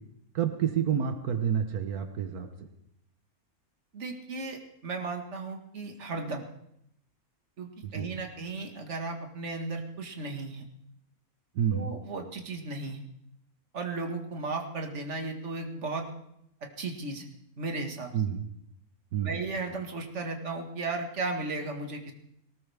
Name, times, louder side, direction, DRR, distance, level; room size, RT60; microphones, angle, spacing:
voice 1, 0.3-2.5 7.8-8.1 11.5-11.9 18.1-18.4 19.1-19.4, right 8 dB, 85° right, 6 dB, 1.6 m, -29 dB
voice 2, 3.9-6.5 7.6-10.7 11.7-13.0 13.7-16.1 16.8-17.3 17.6-18.1 19.2-22.1, right 3 dB, 50° right, 3 dB, 2.0 m, -35 dB
18.5 x 18.5 x 3.5 m, 0.76 s
omnidirectional pair, 1.5 m